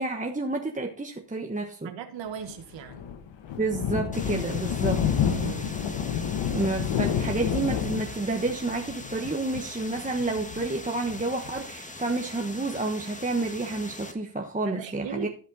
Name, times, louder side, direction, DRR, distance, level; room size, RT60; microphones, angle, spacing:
voice 1, 0.0-1.9 3.5-5.0 6.5-15.3, right 2 dB, 15° right, 1.2 m, -30 dB
voice 2, 1.8-3.1 5.2-5.8 14.6-15.3, right 8 dB, 85° right, 1.5 m, -38 dB
Thunder, 2.4-11.6, left 8 dB, 85° left, 1.2 m, -29 dB
sound 1, 4.1-14.1, left 2 dB, 15° left, 1.6 m, -42 dB
15.0 x 5.2 x 4.1 m
cardioid pair, 55°, 43 cm